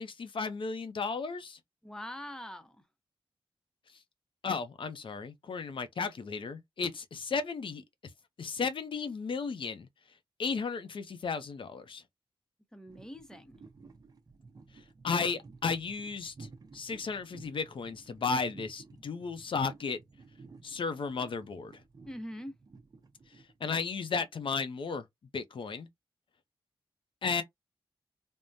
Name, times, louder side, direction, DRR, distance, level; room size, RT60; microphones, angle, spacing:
voice 1, 0.0-1.6 4.4-7.8 8.4-9.9 10.4-12.0 15.0-16.5 16.7-20.0 20.6-21.7 23.6-25.0 25.3-25.9 27.2-27.4, left 5 dB, 60° left, 0.6 m, -34 dB
voice 2, 1.8-2.8 12.7-13.6 22.1-22.5, equal, 5° left, 0.7 m, -43 dB
sound 1, 12.9-23.8, right 4 dB, 40° right, 0.6 m, -54 dB
3.5 x 2.1 x 2.6 m
wide cardioid pair, 100°, 10 cm